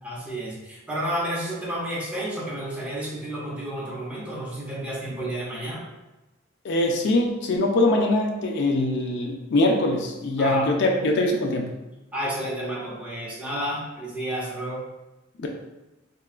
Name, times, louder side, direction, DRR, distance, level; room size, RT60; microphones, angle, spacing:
voice 1, 0.0-5.8 10.4-10.7 12.1-14.8, equal, 5° right, -6 dB, 0.8 m, -31 dB
voice 2, 6.6-11.7 15.4-15.5, left 1 dB, 60° left, 1 dB, 0.4 m, -22 dB
4.0 x 2.3 x 2.4 m, 1.0 s
head